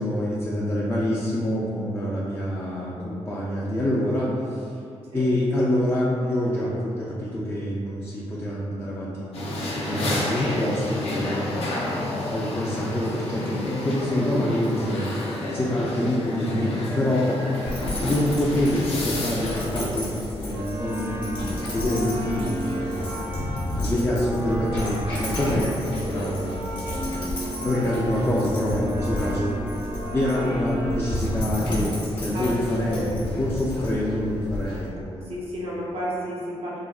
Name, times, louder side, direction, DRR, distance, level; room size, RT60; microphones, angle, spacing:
voice 1, 0.0-4.6 5.1-15.1 15.5-17.4 17.9-21.3 21.6-23.2 23.7-27.1 27.6-29.6 30.1-35.3, left 1 dB, 20° left, -6 dB, 0.4 m, -26 dB
sound 1, 9.3-19.6, left 2 dB, 75° left, 0.6 m, -30 dB
Dog, 17.6-34.9, left 1 dB, 50° left, 0.9 m, -32 dB
sound 2, 20.5-31.0, equal, 80° right, 1.2 m, -33 dB
voice 2, 27.8-28.1 30.3-30.8 32.3-33.5 35.2-36.8, equal, 65° right, -5 dB, 0.6 m, -33 dB
3.5 x 2.0 x 2.3 m, 2.4 s
cardioid pair, 95°, 11 cm